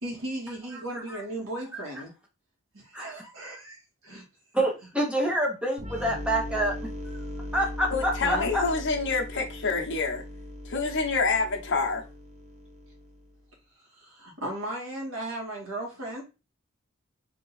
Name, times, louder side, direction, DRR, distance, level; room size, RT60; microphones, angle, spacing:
voice 1, 0.0-2.1 2.7-4.3 8.2-8.5 13.9-16.2, right 1 dB, 85° right, 1.8 m, -36 dB
voice 2, 0.7-1.2 1.7-1.8 2.9-3.2 4.5-6.7 7.0-7.2 7.5-8.6, right 1 dB, 5° right, 1.1 m, -27 dB
sound 1, 5.8-13.4, left 1 dB, 35° right, 0.8 m, -39 dB
voice 3, 7.9-10.2 10.6-12.0, left 4 dB, 60° left, 1.0 m, -27 dB
3.7 x 2.8 x 4.0 m
head